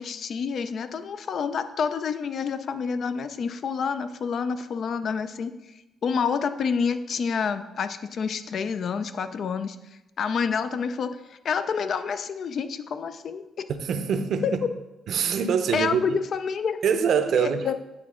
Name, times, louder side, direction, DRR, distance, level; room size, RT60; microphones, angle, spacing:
voice 1, 0.0-5.5 6.0-9.8 10.2-13.7 14.4-14.5 15.7-16.8 17.3-17.7, left 6 dB, 55° left, 11 dB, 0.4 m, -28 dB
voice 2, 13.8-14.6 15.1-16.0 16.8-17.7, right 7 dB, 65° right, 9 dB, 0.6 m, -24 dB
8.9 x 3.7 x 3.7 m, 0.99 s
cardioid pair, 100°, 0 cm